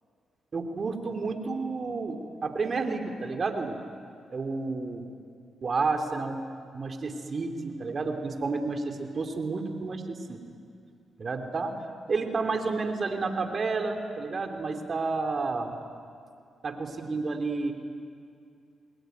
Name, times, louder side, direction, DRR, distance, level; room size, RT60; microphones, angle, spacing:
voice 1, 0.5-3.8 4.3-5.0 5.6-6.4 6.7-10.4 11.2-11.7 12.1-15.7 16.6-17.7, right 4 dB, 50° right, 5 dB, 3.3 m, -30 dB
28.5 x 21.0 x 9.5 m, 2.4 s
supercardioid pair, 55°, 0 cm